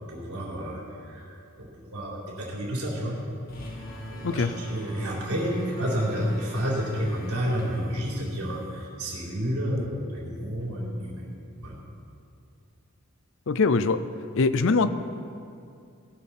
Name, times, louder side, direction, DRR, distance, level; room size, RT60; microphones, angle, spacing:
voice 1, 0.1-0.8 1.1-1.3 1.6-3.2 4.1-11.2 11.6-11.8, equal, 85° right, -4 dB, 3.9 m, -30 dB
sound 1, 3.5-8.9, equal, 45° left, 2.0 m, -41 dB
voice 2, 13.5-14.0 14.3-14.9, left 4 dB, 60° left, 13 dB, 0.5 m, -22 dB
17.5 x 11.0 x 4.3 m, 2.5 s
head